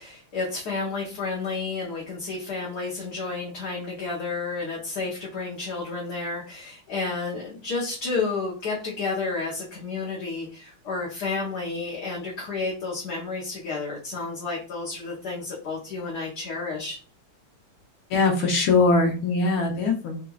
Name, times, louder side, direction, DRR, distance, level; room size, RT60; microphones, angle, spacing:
voice 1, 0.0-17.0, left 4 dB, 60° left, -4 dB, 1.3 m, -31 dB
voice 2, 18.1-20.2, left 3 dB, 80° left, 2 dB, 1.6 m, -21 dB
4.5 x 2.4 x 2.3 m, 0.37 s
omnidirectional pair, 2.3 m